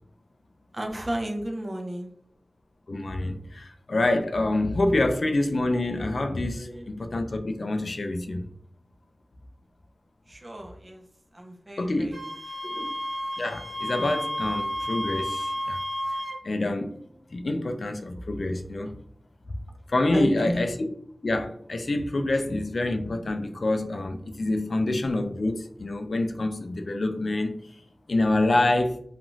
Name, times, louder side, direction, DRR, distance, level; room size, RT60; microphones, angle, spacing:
voice 1, 0.7-2.1 6.5-6.9 10.3-11.0 11.3-12.3 12.6-12.8 16.8-17.4 20.1-20.6, right 1 dB, 35° right, 0.6 m, -34 dB
voice 2, 2.9-8.4 11.8-12.2 13.4-15.8 16.4-16.9 17.3-19.0 19.9-20.7 21.2-27.5 28.1-28.9, left 2 dB, 70° left, 0.4 m, -26 dB
Wind instrument woodwind instrument, 12.1-16.4, left 1 dB, 70° right, 1.3 m, -31 dB
2.5 x 2.4 x 3.0 m
wide cardioid pair, 75°, 0 cm